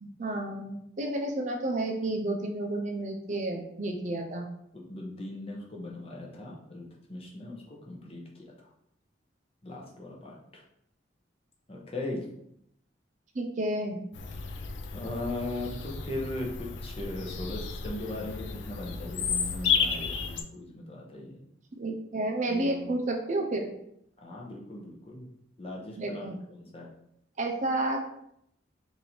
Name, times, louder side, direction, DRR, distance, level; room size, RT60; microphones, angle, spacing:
voice 1, 0.0-4.5 13.3-14.0 21.8-23.7 26.0-26.4 27.4-28.0, right 1 dB, 40° right, 2 dB, 0.5 m, -31 dB
voice 2, 4.9-8.5 9.6-10.6 11.7-12.2 14.9-21.4 22.5-22.9 24.2-25.3 25.6-26.9, left 2 dB, 30° left, -2 dB, 0.7 m, -38 dB
Bird vocalization bird call bird song, 14.1-20.4, left 6 dB, 70° left, 0.4 m, -33 dB
3.1 x 2.7 x 4.2 m, 0.74 s
head